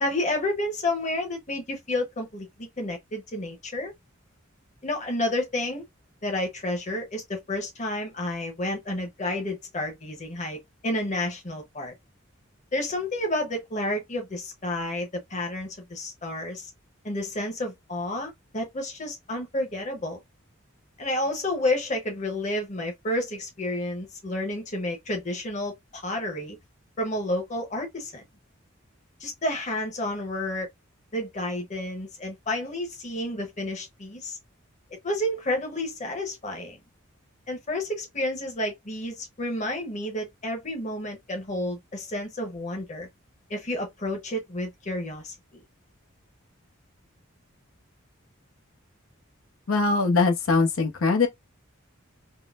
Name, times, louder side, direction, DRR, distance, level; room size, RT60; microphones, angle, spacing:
voice 1, 0.0-3.9 4.8-5.9 6.2-11.9 12.7-16.7 17.0-20.2 21.0-26.6 27.0-28.2 29.2-30.7 31.1-34.4 35.0-36.8 37.5-43.1 43.5-45.3, left 1 dB, 35° left, 0.9 m, -30 dB
voice 2, 49.7-51.3, left 4 dB, 85° left, 0.8 m, -22 dB
3.7 x 2.1 x 2.4 m
head